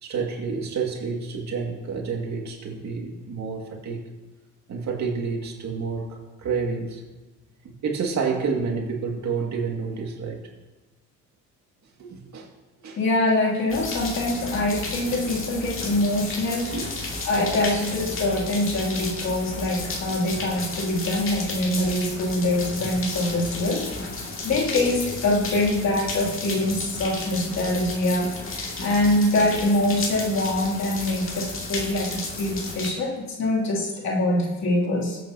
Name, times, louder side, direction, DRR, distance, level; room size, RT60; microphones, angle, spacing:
voice 1, 0.0-4.0 4.7-7.0 7.6-10.4 12.0-12.5 12.8-13.0 15.0-15.1 16.7-17.0 20.1-20.2 22.8-23.0 26.5-26.6, right 5 dB, 65° right, 1 dB, 2.2 m, -29 dB
voice 2, 13.0-16.8 17.2-24.0 24.4-35.2, left 1 dB, 65° left, -4 dB, 3.0 m, -24 dB
sound 1, 13.7-32.9, left 3 dB, 45° left, 2.5 m, -33 dB
21.5 x 8.4 x 2.9 m, 1.2 s
cardioid pair, 90°, 30 cm